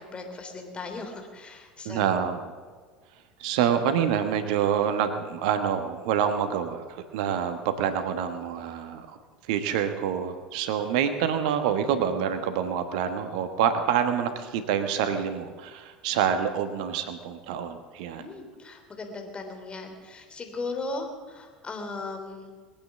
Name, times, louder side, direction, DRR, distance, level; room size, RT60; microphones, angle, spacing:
voice 1, 0.0-2.1 18.2-22.5, left 3 dB, 20° left, 4 dB, 3.3 m, -37 dB
voice 2, 1.8-2.5 3.4-9.2 9.4-18.3, right 8 dB, 60° right, 8 dB, 1.2 m, -27 dB
21.0 x 8.8 x 7.2 m, 1.5 s
figure-of-eight pair, 70°, 5 cm